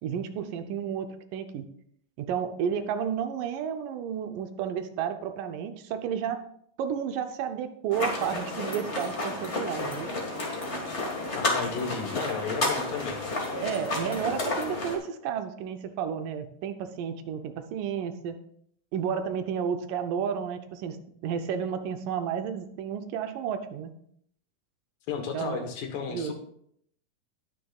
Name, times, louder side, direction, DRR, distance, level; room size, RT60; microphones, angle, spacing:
voice 1, 0.0-1.7 2.2-6.4 6.8-10.1 13.6-18.4 18.9-23.9 25.3-25.7 26.1-26.3, right 8 dB, 80° right, 8 dB, 2.3 m, -32 dB
sound 1, 7.9-15.0, left 2 dB, 30° left, 1.3 m, -31 dB
voice 2, 11.4-13.3 25.1-26.3, left 6 dB, 80° left, 5 dB, 2.9 m, -33 dB
18.5 x 6.5 x 2.4 m, 0.67 s
omnidirectional pair, 3.9 m